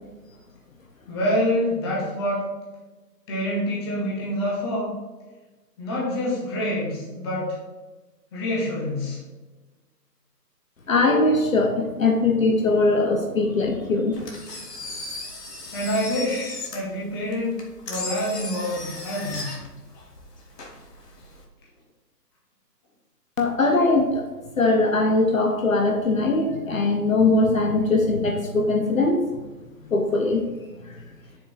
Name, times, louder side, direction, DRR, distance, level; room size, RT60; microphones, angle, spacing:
voice 1, 1.1-2.5 3.3-5.0 5.8-7.5 8.3-9.2 15.7-19.5, left 1 dB, 15° left, -4 dB, 1.5 m, -26 dB
voice 2, 10.9-14.1 23.4-24.2 24.6-29.2 29.9-30.4 30.9-31.0, left 2 dB, 55° left, 3 dB, 1.1 m, -21 dB
Engine, 14.1-21.4, left 2 dB, 75° left, 2.5 m, -37 dB
7.7 x 6.9 x 3.3 m, 1.2 s
figure-of-eight pair, 155°, 50 cm